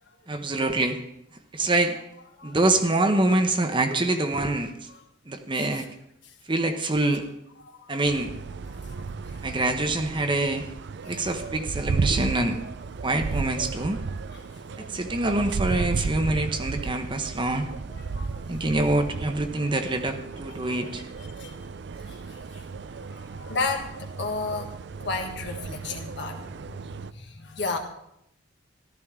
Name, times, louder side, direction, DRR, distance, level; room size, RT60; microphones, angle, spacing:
voice 1, 0.3-1.0 1.5-2.0 2.4-4.7 5.3-5.9 6.5-7.2 7.9-8.3 9.4-10.6 11.1-12.6 13.0-14.0 14.8-17.7 18.5-21.0, right 2 dB, 25° right, 6 dB, 0.8 m, -25 dB
sound 1, 8.0-27.1, right 4 dB, 60° right, 0.4 m, -34 dB
voice 2, 18.1-18.6 19.0-19.1 20.6-20.7 21.4-21.6 22.1-22.2 23.1-24.7 25.0-26.8 27.1-27.8, left 3 dB, 60° left, 3 dB, 1.6 m, -33 dB
14.5 x 12.5 x 3.6 m, 0.78 s
head